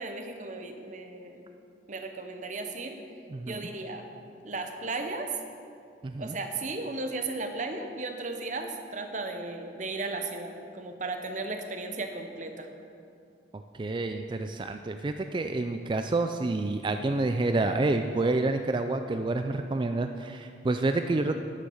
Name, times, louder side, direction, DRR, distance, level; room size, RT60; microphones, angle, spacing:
voice 1, 0.0-1.4 1.9-3.0 3.4-4.1 4.4-5.4 6.2-12.7, right 3 dB, 45° right, 5 dB, 0.9 m, -35 dB
voice 2, 3.3-3.7 6.0-6.4 13.5-21.3, right 2 dB, 25° right, 7 dB, 0.3 m, -28 dB
9.9 x 9.9 x 5.5 m, 2.4 s
head